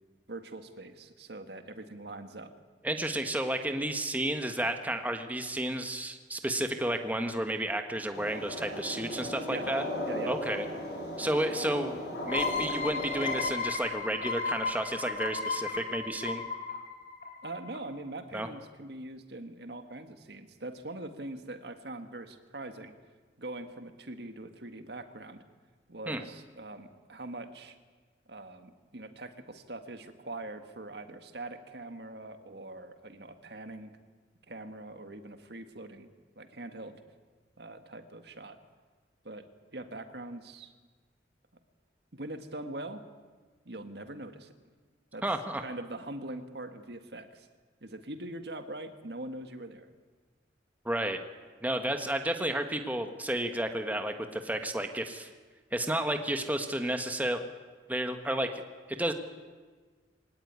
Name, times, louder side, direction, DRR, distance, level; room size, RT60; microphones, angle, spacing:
voice 1, 0.3-2.5 9.5-9.7 10.1-10.3 17.4-22.9 23.4-25.4 25.9-27.8 28.3-33.9 34.5-36.1 36.4-37.0 37.6-38.6 39.2-39.5 39.7-40.7 42.1-43.0 43.7-44.5 45.1-45.2 45.6-47.5 47.8-49.9, right 2 dB, 65° right, 8 dB, 1.8 m, -42 dB
voice 2, 2.8-9.8 10.3-10.6 11.2-12.0 12.3-16.4 18.3-18.5 26.1-26.2 45.2-45.6 50.8-51.2 51.6-55.3 55.7-57.4 57.9-58.6 58.9-59.1, right 1 dB, 10° right, 6 dB, 1.4 m, -31 dB
sound 1, 8.1-13.5, equal, 70° left, 7.9 m, -36 dB
sound 2, 12.3-17.8, left 4 dB, 45° left, 3.8 m, -34 dB
24.0 x 18.0 x 9.6 m, 1.4 s
head